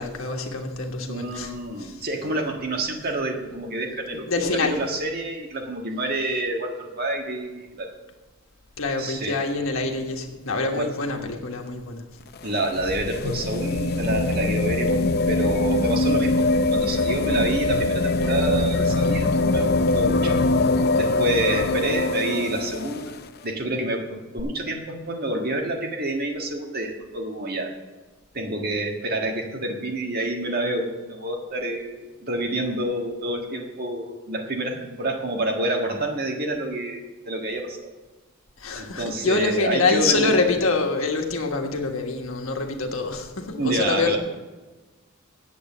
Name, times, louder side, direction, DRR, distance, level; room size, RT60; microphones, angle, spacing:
voice 1, 0.0-2.0 4.1-4.8 8.8-12.0 12.5-12.6 38.6-44.2, left 3 dB, 75° left, 3 dB, 1.5 m, -25 dB
voice 2, 1.1-7.9 9.0-9.4 10.7-10.9 12.4-20.4 20.9-23.1 23.4-27.7 28.3-37.9 38.7-40.5 43.6-44.2, right 2 dB, 50° right, 2 dB, 1.6 m, -28 dB
sound 1, 12.2-23.2 24.4-24.5, left 2 dB, 50° left, 0.6 m, -23 dB
8.7 x 8.3 x 7.2 m, 1.2 s
head